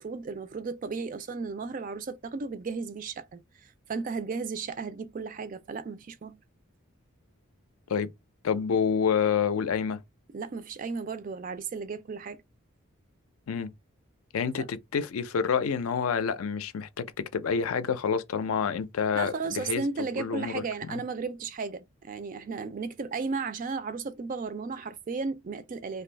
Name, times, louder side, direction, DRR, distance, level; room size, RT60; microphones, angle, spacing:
voice 1, 0.0-6.4 10.3-12.4 14.6-14.7 19.1-26.0, right 4 dB, 40° right, 0.3 m, -34 dB
voice 2, 8.4-10.0 13.5-13.7 14.3-19.8 20.2-20.6 20.9-21.0, left 6 dB, 80° left, 0.4 m, -28 dB
2.6 x 2.3 x 3.2 m
head